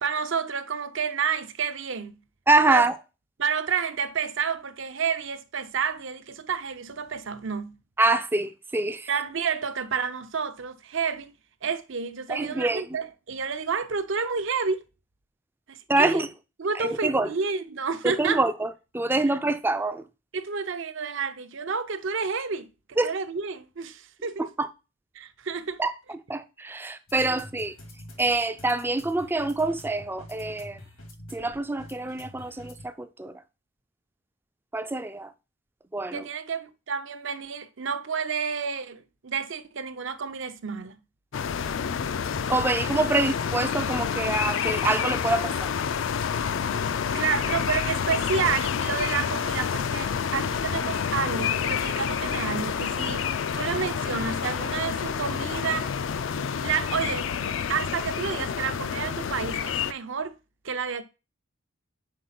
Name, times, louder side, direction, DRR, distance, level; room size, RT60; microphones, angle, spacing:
voice 1, 0.0-2.2 2.7-2.8 3.4-7.8 9.1-11.3 11.6-14.8 15.7-16.2 16.6-18.4 20.3-24.5 25.1-25.8 27.2-27.4 36.1-41.0 47.1-53.2 53.5-55.9 56.6-57.3 57.7-60.4 60.6-61.0, right 6 dB, 60° right, 0.6 m, -30 dB
voice 2, 2.5-3.0 8.0-9.1 12.3-12.8 15.9-16.3 16.8-17.3 18.0-20.0 23.0-23.1 24.4-24.7 25.8-27.8 28.2-30.8 31.3-33.4 34.7-35.3 35.9-36.3 42.5-45.7, right 2 dB, 10° right, 0.3 m, -25 dB
sound 1, 27.1-32.8, left 1 dB, 90° left, 1.9 m, -46 dB
sound 2, 41.3-59.9, left 7 dB, 60° left, 0.4 m, -28 dB
5.2 x 4.6 x 5.8 m
head